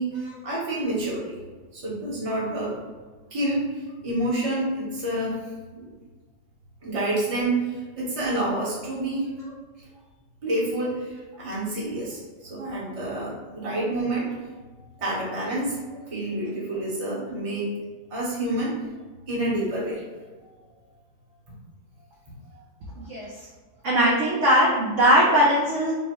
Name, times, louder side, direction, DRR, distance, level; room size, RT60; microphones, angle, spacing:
voice 1, 0.0-1.4 1.7-2.7 3.3-5.3 5.7-5.9 6.8-9.3 10.4-14.3 15.0-17.7 18.1-18.7 19.3-20.0, right 1 dB, 25° right, -6 dB, 0.9 m, -28 dB
voice 2, 23.0-23.3 23.8-25.9, equal, 55° right, -6 dB, 0.9 m, -20 dB
5.2 x 2.1 x 3.0 m, 1.3 s
omnidirectional pair, 1.9 m